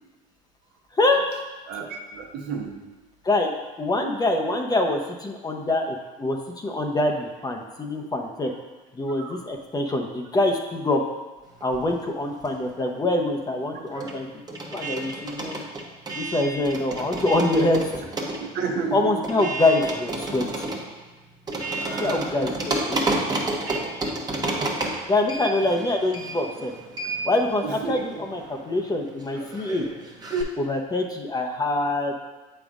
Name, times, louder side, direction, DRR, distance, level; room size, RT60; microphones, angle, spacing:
voice 1, 1.7-2.8 9.2-9.4 18.5-19.5 21.7-22.3 23.7-23.8 27.6-28.0, right 5 dB, 65° right, 2 dB, 1.0 m, -31 dB
voice 2, 3.8-8.5 8.9-11.0 11.6-14.3 14.7-15.6 16.1-17.8 18.9-20.7 21.9-23.0 25.1-26.7 27.2-29.9 30.6-32.1, left 2 dB, 20° left, 2 dB, 0.8 m, -25 dB
sound 1, 11.6-12.9 13.1-30.4, right 2 dB, 20° right, 1.1 m, -31 dB
7.5 x 5.3 x 2.5 m, 1.2 s
supercardioid pair, 95°, 18 cm